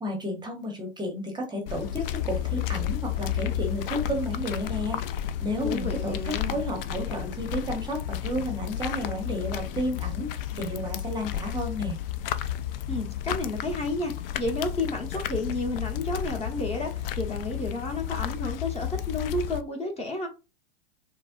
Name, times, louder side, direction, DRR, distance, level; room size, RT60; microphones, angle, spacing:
voice 1, 0.0-5.0 5.4-12.0, equal, 15° right, 0.8 m, -32 dB
sound 1, 1.7-19.6, left 11 dB, 60° left, 0.4 m, -32 dB
voice 2, 5.6-6.6 12.9-20.3, left 2 dB, 20° left, 0.8 m, -31 dB
4.2 x 2.0 x 2.5 m
hypercardioid pair, 105°, 33 cm